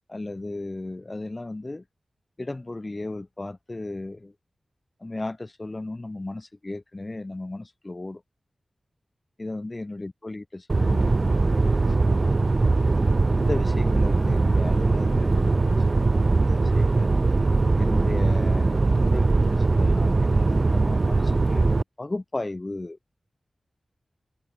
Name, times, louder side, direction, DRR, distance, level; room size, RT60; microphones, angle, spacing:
voice 1, 0.1-1.8 2.4-4.3 5.0-8.2 9.4-12.4 13.4-16.1 16.4-17.1 17.8-23.0, left 2 dB, 30° left, 0.8 m, -35 dB
sound 1, 10.7-21.8, right 3 dB, 45° right, 0.5 m, -21 dB
wide cardioid pair, 70°, 0 cm